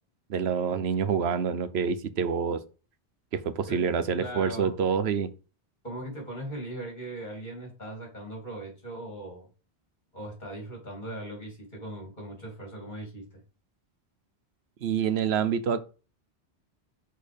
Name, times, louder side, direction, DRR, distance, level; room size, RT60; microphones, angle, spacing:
voice 1, 0.3-2.6 3.3-5.3 14.8-15.8, right 7 dB, 70° right, 1.0 m, -27 dB
voice 2, 4.2-4.7 5.8-9.5 10.1-13.2, right 1 dB, 45° left, 2.9 m, -39 dB
6.4 x 4.5 x 5.1 m
omnidirectional pair, 1.1 m